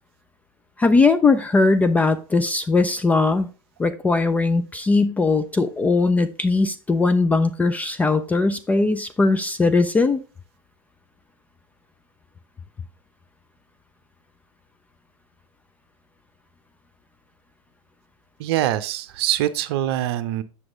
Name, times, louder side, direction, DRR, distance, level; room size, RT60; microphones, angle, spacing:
voice 1, 0.8-3.5 3.8-10.2, left 3 dB, 10° left, 9 dB, 0.3 m, -19 dB
voice 2, 18.4-20.4, right 13 dB, 50° right, 13 dB, 0.7 m, -24 dB
7.7 x 6.0 x 3.6 m, 0.35 s
figure-of-eight pair, 100°, 17 cm